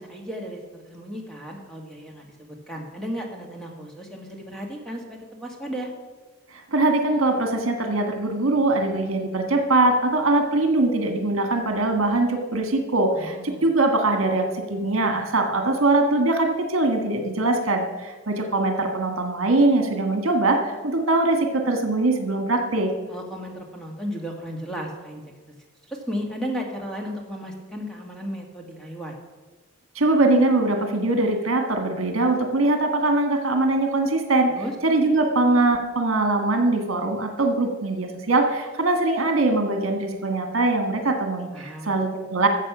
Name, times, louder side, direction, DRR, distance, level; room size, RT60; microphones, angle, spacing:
voice 1, 0.0-5.9 13.1-13.6 23.1-25.2 25.9-29.2 34.5-34.7 41.5-42.0, equal, 5° left, 1 dB, 1.7 m, -34 dB
voice 2, 6.7-22.9 29.9-34.5 34.8-42.5, right 2 dB, 70° right, 5 dB, 1.6 m, -22 dB
14.0 x 7.4 x 6.1 m, 1.3 s
head